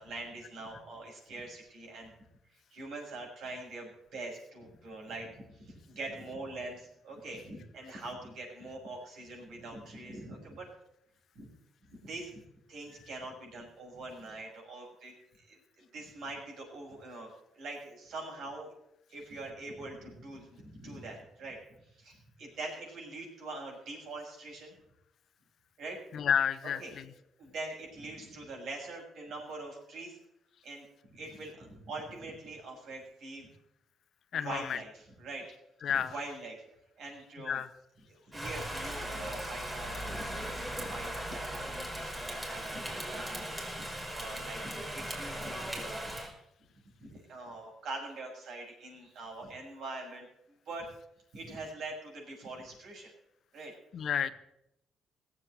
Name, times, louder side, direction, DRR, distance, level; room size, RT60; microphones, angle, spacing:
voice 1, 0.0-2.1 2.7-10.7 11.3-11.5 11.8-12.4 12.7-18.7 19.1-21.6 21.9-24.7 25.8-26.0 26.6-26.9 27.4-30.2 30.6-33.5 34.3-35.4 35.9-36.6 37.0-37.6 38.1-43.5 43.8-46.2 47.0-50.9 51.3-53.1 53.5-53.7, right 2 dB, 70° right, 0 dB, 6.6 m, -43 dB
voice 2, 26.1-27.0 34.3-34.8 35.8-36.1 37.5-37.7 53.9-54.3, left 8 dB, 65° left, 13 dB, 0.9 m, -30 dB
Rain, 38.3-46.3, right 1 dB, 10° right, 5.0 m, -38 dB
18.5 x 7.6 x 7.8 m, 0.80 s
cardioid pair, 90°, 0 cm